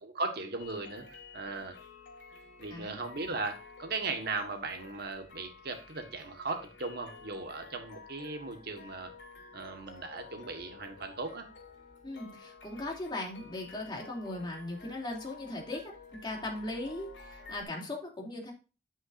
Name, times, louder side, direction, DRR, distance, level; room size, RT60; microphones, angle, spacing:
voice 1, 0.0-1.8 2.6-9.1 9.5-11.5, right 3 dB, 60° right, 5 dB, 1.5 m, -37 dB
sound 1, 0.6-17.6, left 4 dB, 75° left, 2.7 m, -51 dB
voice 2, 12.0-18.5, left 2 dB, 25° left, -1 dB, 2.8 m, -38 dB
9.5 x 8.6 x 2.6 m, 0.32 s
head